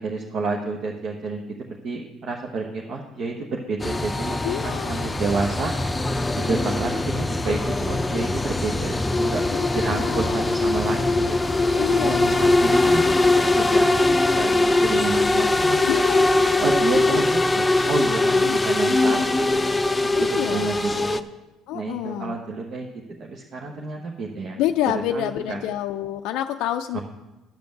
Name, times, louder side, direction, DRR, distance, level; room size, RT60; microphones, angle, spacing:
voice 1, 0.0-1.4 1.8-5.8 6.3-9.5 9.7-11.4 12.0-16.0 16.6-19.7 20.0-21.1 21.7-22.9 23.2-24.6 25.1-25.6 26.9-27.0, right 3 dB, 55° right, 0 dB, 1.1 m, -30 dB
sound 1, 3.8-21.2, left 2 dB, 15° left, 0.5 m, -21 dB
voice 2, 4.4-5.1 6.4-6.9 9.6-10.4 11.7-12.7 15.8-16.3 16.9-17.2 18.3-18.6 20.1-20.8 21.7-22.4 24.6-27.0, left 12 dB, 75° left, 7 dB, 0.4 m, -28 dB
10.5 x 5.2 x 7.8 m, 1.1 s
supercardioid pair, 85°, 0 cm